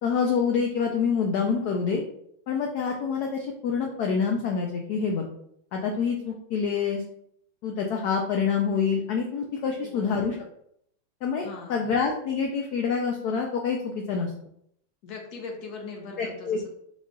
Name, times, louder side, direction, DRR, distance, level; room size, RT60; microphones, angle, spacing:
voice 1, 0.0-2.0 2.5-5.3 5.7-7.0 7.6-10.4 11.2-14.3 16.2-16.7, left 6 dB, 85° left, 2 dB, 0.8 m, -26 dB
voice 2, 9.8-10.4 11.4-11.9 15.0-16.7, left 4 dB, 60° left, 1 dB, 1.2 m, -40 dB
3.8 x 3.1 x 3.6 m, 0.70 s
omnidirectional pair, 2.3 m